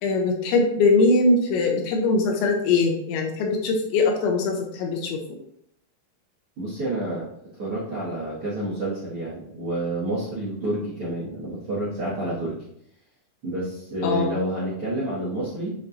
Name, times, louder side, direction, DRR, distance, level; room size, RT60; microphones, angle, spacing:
voice 1, 0.0-5.2 14.0-14.3, left 3 dB, 80° left, 2 dB, 3.0 m, -21 dB
voice 2, 6.6-7.2 7.6-12.6 13.4-15.7, right 1 dB, 55° right, -7 dB, 1.5 m, -29 dB
8.0 x 5.7 x 2.7 m, 0.74 s
omnidirectional pair, 5.6 m